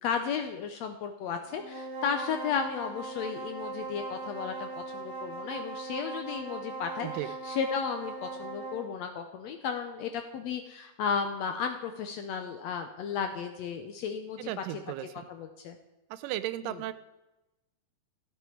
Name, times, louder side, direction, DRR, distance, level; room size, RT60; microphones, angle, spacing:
voice 1, 0.0-14.5 15.3-15.8 16.6-16.8, left 6 dB, 75° left, 6 dB, 1.6 m, -34 dB
sound 1, 1.5-8.9, right 3 dB, 40° right, 2.4 m, -40 dB
voice 2, 14.4-15.2 16.1-16.9, right 14 dB, 90° right, 13 dB, 2.3 m, -35 dB
14.0 x 8.2 x 4.5 m, 0.99 s
omnidirectional pair, 3.7 m